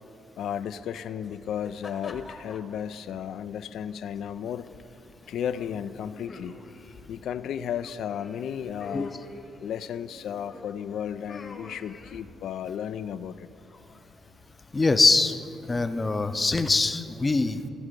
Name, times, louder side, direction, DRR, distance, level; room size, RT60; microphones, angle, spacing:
voice 1, 0.4-4.7 5.3-6.6 7.1-9.1 9.6-13.5, left 9 dB, 75° left, 13 dB, 0.3 m, -34 dB
sound 1, 0.5-16.2, left 3 dB, 40° left, 1.0 m, -48 dB
voice 2, 14.7-15.4 15.7-17.7, left 3 dB, 25° left, 10 dB, 0.6 m, -23 dB
15.0 x 5.0 x 6.7 m, 2.7 s
cardioid pair, 90°, 0 cm